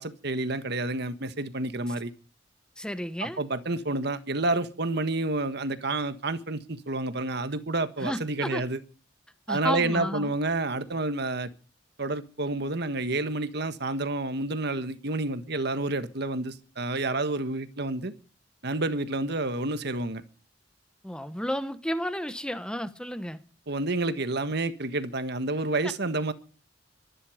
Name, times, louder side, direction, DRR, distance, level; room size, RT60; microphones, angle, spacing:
voice 1, 0.0-2.1 3.2-8.8 9.5-11.5 12.0-18.1 18.6-20.2 23.7-26.3, right 2 dB, 60° right, 1.6 m, -29 dB
voice 2, 2.8-3.4 8.0-8.6 9.5-10.3 21.0-23.4, equal, 5° left, 1.3 m, -32 dB
24.0 x 11.0 x 5.1 m
head